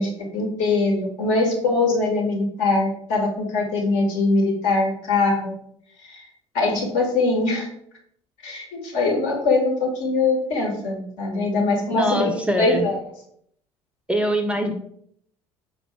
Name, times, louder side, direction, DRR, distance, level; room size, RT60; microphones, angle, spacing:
voice 1, 0.0-5.5 6.0-6.2 6.5-7.7 8.4-12.3 12.6-13.0, left 3 dB, 60° left, 1 dB, 1.1 m, -22 dB
voice 2, 11.9-12.9 14.1-14.7, equal, 10° right, 4 dB, 0.4 m, -23 dB
4.5 x 2.9 x 3.0 m, 0.69 s
figure-of-eight pair, 60°, 15 cm